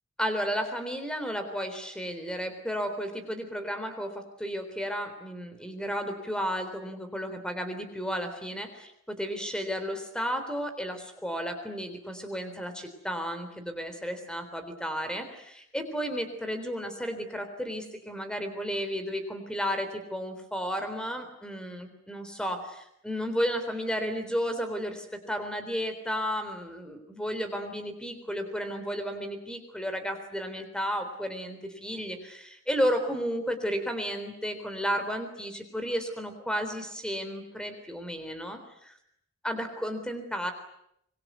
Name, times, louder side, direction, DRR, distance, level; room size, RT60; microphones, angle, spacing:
voice 1, 0.2-38.9 39.4-40.5, equal, 5° left, 8 dB, 3.7 m, -33 dB
25.0 x 23.0 x 9.4 m, 0.75 s
head